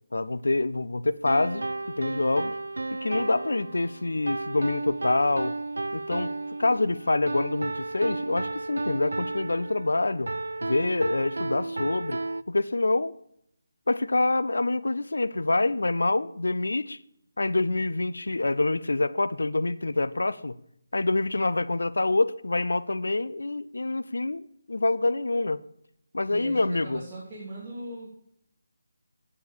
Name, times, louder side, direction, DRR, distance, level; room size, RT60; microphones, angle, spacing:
voice 1, 0.1-1.7 2.0-2.5 3.0-5.5 5.9-6.3 6.6-10.3 10.6-12.2 12.5-13.1 13.9-17.0 17.4-20.5 20.9-25.6 26.1-27.0, left 2 dB, 85° left, 15 dB, 0.6 m, -26 dB
sound 1, 1.3-12.4, right 2 dB, 85° right, 0.5 m, -33 dB
voice 2, 26.2-28.1, right 1 dB, 20° right, -9 dB, 2.9 m, -40 dB
8.7 x 6.9 x 7.1 m, 0.73 s
figure-of-eight pair, 165°, 0 cm